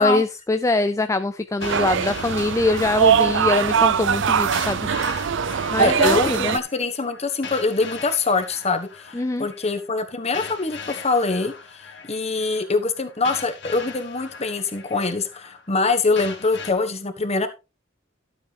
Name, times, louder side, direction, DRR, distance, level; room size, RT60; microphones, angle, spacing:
voice 1, 0.0-4.9 5.7-6.6 9.1-9.5, left 2 dB, 15° left, 10 dB, 0.4 m, -23 dB
sound 1, 1.6-16.7, left 5 dB, 60° left, 1.9 m, -40 dB
sound 2, 1.6-6.6, right 7 dB, 65° right, 0.5 m, -21 dB
voice 2, 5.8-9.1 9.4-17.5, left 3 dB, 35° left, 9 dB, 1.3 m, -24 dB
12.0 x 7.7 x 3.4 m, 0.28 s
head